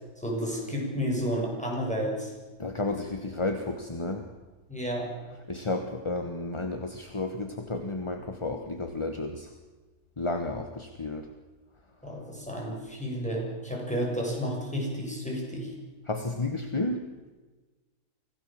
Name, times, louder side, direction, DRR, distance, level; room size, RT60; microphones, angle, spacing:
voice 1, 0.2-2.3 4.7-5.1 12.0-15.7, equal, 5° left, -2 dB, 6.8 m, -31 dB
voice 2, 2.6-4.3 5.5-9.5 10.2-11.3 16.0-17.1, left 2 dB, 20° left, 6 dB, 1.1 m, -32 dB
25.0 x 16.5 x 7.5 m, 1.3 s
omnidirectional pair, 1.8 m